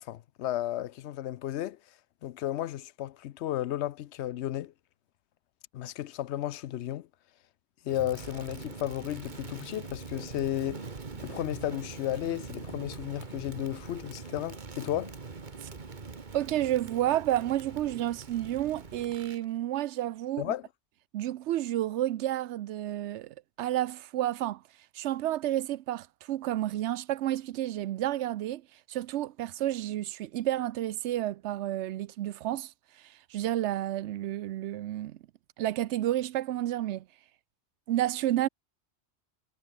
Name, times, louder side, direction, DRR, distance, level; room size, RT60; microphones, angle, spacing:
voice 1, 0.0-1.8 2.2-4.7 5.7-7.1 7.8-10.9 11.2-15.1 20.4-20.6, left 12 dB, 80° left, 0.9 m, -33 dB
Crackle, 7.9-19.4, right 4 dB, 45° right, 1.6 m, -43 dB
voice 2, 16.3-20.5 21.1-24.6 24.9-28.6 28.9-32.7 33.0-35.2 35.6-37.0 37.9-38.5, right 13 dB, 85° right, 0.9 m, -30 dB
omnidirectional pair, 1.1 m